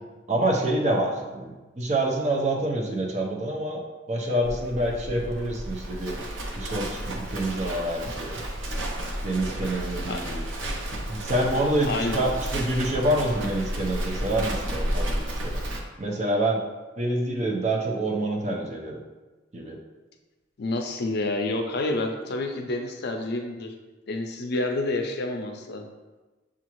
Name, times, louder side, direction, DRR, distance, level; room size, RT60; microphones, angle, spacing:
voice 1, 0.3-3.8 4.1-6.2 6.6-8.4 9.2-10.4 11.1-15.6 16.0-16.6 17.0-19.0 19.5-19.8, right 1 dB, 40° right, 0 dB, 0.6 m, -27 dB
Livestock farm animals working animals, 4.4-15.8, right 1 dB, 90° right, 0.7 m, -32 dB
voice 2, 11.8-12.2 20.6-23.7 24.1-25.8, left 2 dB, 60° left, 4 dB, 0.5 m, -28 dB
7.0 x 2.4 x 3.0 m, 1.2 s
head